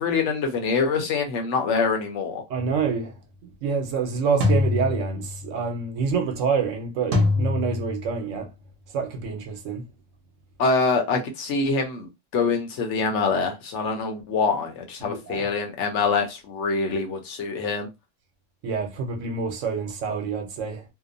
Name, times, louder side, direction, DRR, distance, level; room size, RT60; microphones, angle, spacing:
voice 1, 0.0-2.4 10.6-17.9, left 4 dB, 70° left, 1.0 m, -25 dB
voice 2, 2.5-3.2 3.4-8.5 8.9-9.8 15.0-15.5 18.6-20.8, right 5 dB, 80° right, 1.0 m, -27 dB
sound 1, 2.6-2.9 4.4-5.6 7.1-8.3, left 3 dB, 55° right, 0.9 m, -24 dB
2.8 x 2.0 x 2.5 m
omnidirectional pair, 1.3 m